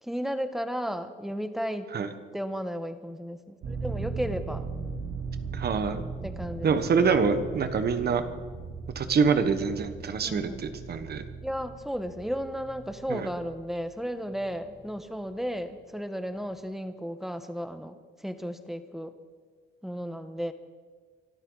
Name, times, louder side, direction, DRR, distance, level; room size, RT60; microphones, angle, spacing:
voice 1, 0.0-2.0 2.3-4.7 6.2-6.8 10.2-10.6 11.4-19.1 19.8-20.5, equal, ahead, 9 dB, 1.2 m, -34 dB
sound 1, 3.6-14.9 15.2-15.3, right 4 dB, 70° right, 3.0 m, -38 dB
voice 2, 5.5-6.0 6.6-8.2 8.9-11.2 13.1-13.3, right 5 dB, 55° right, 10 dB, 1.3 m, -25 dB
24.0 x 13.0 x 4.0 m, 1.5 s
cardioid pair, 90°, 20 cm